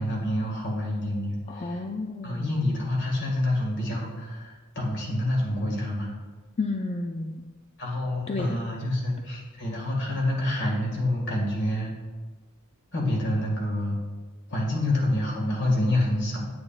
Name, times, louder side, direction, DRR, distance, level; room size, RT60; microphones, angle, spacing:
voice 1, 0.0-1.8 2.2-6.1 7.8-11.9 12.9-14.0 14.5-16.5, left 1 dB, 55° left, -2 dB, 1.9 m, -27 dB
voice 2, 1.5-2.6 6.6-7.5 8.3-8.6, left 3 dB, 25° left, 3 dB, 0.3 m, -31 dB
8.7 x 8.5 x 2.4 m, 1.3 s
head